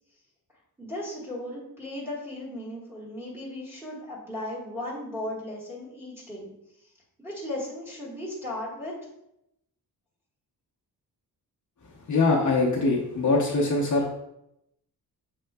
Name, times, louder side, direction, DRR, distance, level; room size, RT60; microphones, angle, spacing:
voice 1, 0.8-6.5 6.8-6.9 7.2-8.9, left 1 dB, 5° right, -8 dB, 1.5 m, -36 dB
voice 2, 12.1-14.1, left 3 dB, 50° left, -3 dB, 0.8 m, -23 dB
6.4 x 3.8 x 2.2 m, 0.83 s
wide cardioid pair, 165°, 38 cm